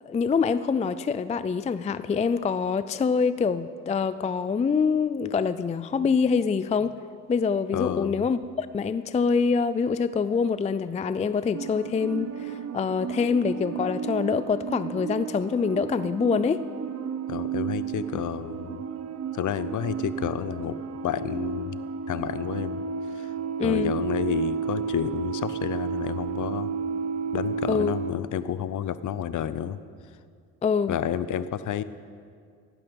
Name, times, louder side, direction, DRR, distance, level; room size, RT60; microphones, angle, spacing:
voice 1, 0.0-7.0 7.3-16.6 23.6-23.9 27.7-27.9 30.6-30.9, left 5 dB, 20° left, 14 dB, 0.4 m, -25 dB
voice 2, 7.7-8.3 17.3-18.8 19.3-20.8 21.0-21.8 22.1-22.8 23.1-23.3 23.6-26.7 27.3-29.8 30.9-31.8, left 9 dB, 50° left, 15 dB, 0.8 m, -30 dB
sound 1, 11.5-28.1, right 6 dB, 40° right, 0.8 m, -32 dB
15.5 x 12.0 x 5.3 m, 2.2 s
supercardioid pair, 80°, 39 cm